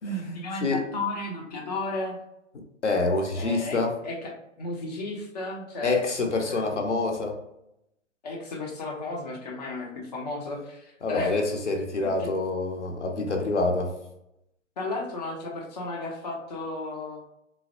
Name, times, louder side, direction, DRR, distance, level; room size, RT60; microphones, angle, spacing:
voice 1, 0.0-2.2 3.4-5.9 6.4-6.8 8.2-11.4 12.0-12.3 14.8-17.2, left 2 dB, 35° left, 0.7 m, -34 dB
voice 2, 2.8-3.9 5.8-7.3 11.0-13.9, left 3 dB, 65° left, 0.8 m, -26 dB
3.9 x 2.1 x 2.6 m
figure-of-eight pair, 125°, 37 cm